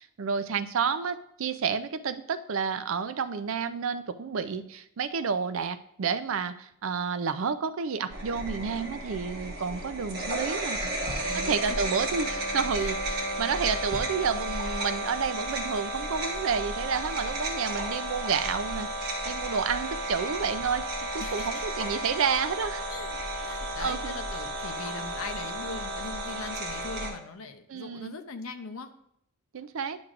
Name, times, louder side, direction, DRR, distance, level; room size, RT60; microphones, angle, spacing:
voice 1, 0.0-10.8 11.3-22.8 23.8-24.1 27.7-28.2 29.5-30.0, right 6 dB, 65° right, 11 dB, 0.4 m, -30 dB
sound 1, 8.1-27.1, right 1 dB, 45° right, 1.5 m, -33 dB
voice 2, 10.8-11.8 12.8-13.0 21.2-21.6 22.9-28.9, left 4 dB, 75° left, 7 dB, 0.7 m, -41 dB
10.5 x 6.1 x 2.5 m, 0.74 s
head